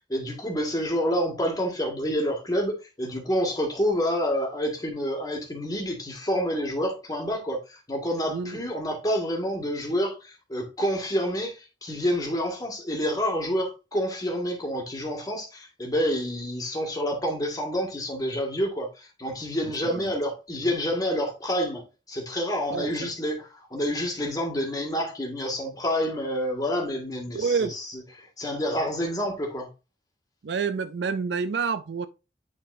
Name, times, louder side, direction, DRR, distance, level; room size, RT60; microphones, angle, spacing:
voice 1, 0.1-21.8 22.1-27.8 28.2-29.7, equal, 20° left, 1.7 m, -28 dB
voice 2, 19.8-20.1 22.7-23.1 27.3-27.7 30.4-32.1, right 5 dB, 70° right, 0.4 m, -28 dB
9.5 x 3.9 x 2.6 m
head